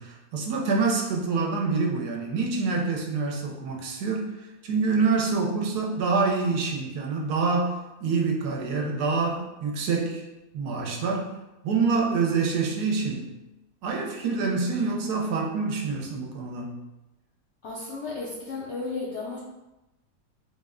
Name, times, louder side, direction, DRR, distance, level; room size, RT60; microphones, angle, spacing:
voice 1, 0.0-10.3 10.5-11.3 11.6-13.3 13.8-16.8, right 4 dB, 75° right, 0 dB, 1.2 m, -26 dB
voice 2, 17.6-19.4, left 3 dB, 70° left, -4 dB, 0.6 m, -34 dB
3.7 x 2.1 x 3.5 m, 1.0 s
omnidirectional pair, 1.7 m